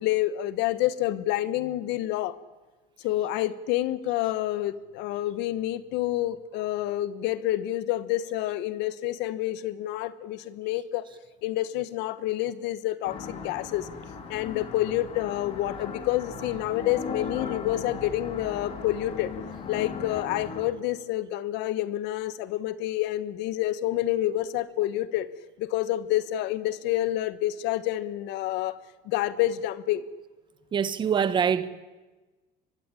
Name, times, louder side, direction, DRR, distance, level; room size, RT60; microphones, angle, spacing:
voice 1, 0.0-2.4 3.0-11.0 11.4-13.9 14.3-19.3 19.7-25.3 25.6-28.8 29.0-30.0, left 14 dB, 80° left, 1.3 m, -28 dB
sound 1, 13.0-20.7, left 5 dB, 35° left, 2.9 m, -38 dB
voice 2, 30.7-31.7, right 7 dB, 25° right, 1.2 m, -24 dB
24.0 x 20.5 x 9.9 m
cardioid pair, 175°, 18 cm